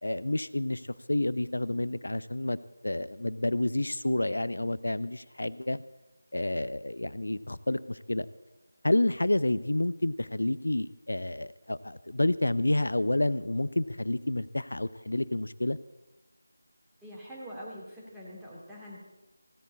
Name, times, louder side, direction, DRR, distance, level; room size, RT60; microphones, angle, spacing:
voice 1, 0.0-2.6 2.8-5.8 6.3-8.3 8.8-15.8, left 1 dB, 60° left, 16 dB, 0.6 m, -29 dB
voice 2, 17.0-19.0, equal, 5° right, -8 dB, 2.5 m, -44 dB
16.0 x 8.1 x 8.4 m, 1.0 s
figure-of-eight pair, 165°, 0 cm